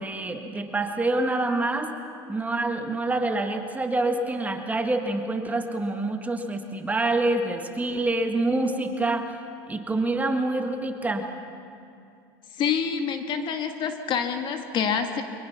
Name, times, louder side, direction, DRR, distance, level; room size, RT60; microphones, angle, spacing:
voice 1, 0.0-1.9 2.3-9.3 9.7-11.3, right 2 dB, 15° right, 4 dB, 1.8 m, -26 dB
voice 2, 12.6-15.2, left 7 dB, 45° left, 6 dB, 1.8 m, -27 dB
23.5 x 21.5 x 5.9 m, 2.5 s
supercardioid pair, 100°, 11 cm